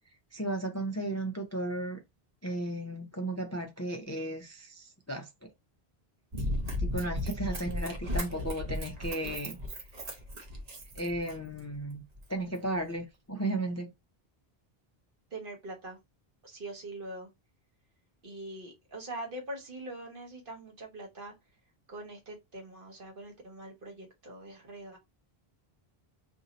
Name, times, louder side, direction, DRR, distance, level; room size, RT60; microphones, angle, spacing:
voice 1, 0.3-2.0 2.4-5.5 6.8-9.6 10.9-12.0 12.3-13.9, right 1 dB, 25° left, 0.4 m, -35 dB
Run, 6.3-11.6 12.2-12.3, left 1 dB, 45° right, 0.8 m, -35 dB
voice 2, 7.3-7.6 15.3-16.0 16.4-17.3 18.2-21.3 21.9-25.0, right 1 dB, 60° right, 1.3 m, -43 dB
2.7 x 2.6 x 4.0 m
omnidirectional pair, 1.0 m